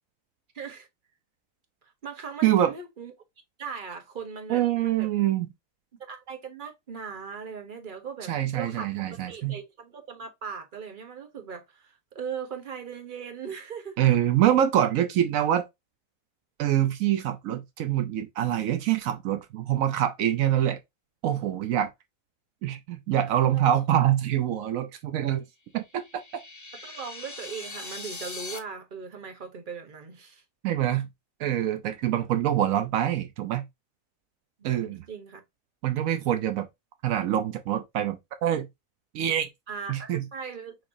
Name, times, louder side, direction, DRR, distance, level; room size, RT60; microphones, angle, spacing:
voice 1, 0.5-0.9 2.0-3.1 3.6-5.1 6.1-14.0 23.5-23.7 26.8-30.4 34.6-35.4 39.7-40.8, right 6 dB, 40° right, 1.1 m, -39 dB
voice 2, 2.4-2.7 4.5-5.5 8.3-9.6 14.0-15.6 16.6-20.8 21.2-21.9 22.6-25.4 25.7-26.0 30.6-31.1 31.4-33.7 34.6-35.0 35.8-36.7 37.0-38.7 39.1-39.5 39.9-40.3, right 11 dB, 80° right, 1.0 m, -25 dB
sound 1, 25.8-28.6, left 2 dB, 25° left, 0.4 m, -40 dB
6.1 x 3.0 x 2.6 m
omnidirectional pair, 1.4 m